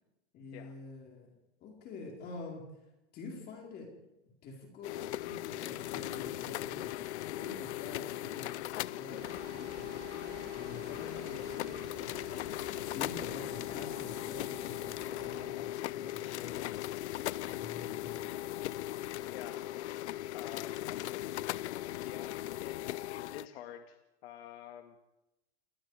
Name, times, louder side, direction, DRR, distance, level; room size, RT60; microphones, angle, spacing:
voice 1, 0.3-1.3 1.6-2.6 3.1-3.9 4.4-7.0 7.3-10.0 10.5-16.6 17.4-18.2, left 4 dB, 30° left, 0 dB, 4.6 m, -47 dB
sound 1, 4.8-23.5, left 14 dB, 90° left, 0.7 m, -38 dB
sound 2, 9.2-15.5, right 9 dB, 30° right, 2.1 m, -53 dB
voice 2, 11.0-11.4 19.3-19.6 20.3-20.8 22.0-22.8 23.2-25.0, left 11 dB, 65° left, 6 dB, 1.9 m, -48 dB
29.5 x 20.5 x 4.9 m, 0.93 s
supercardioid pair, 160°, 33 cm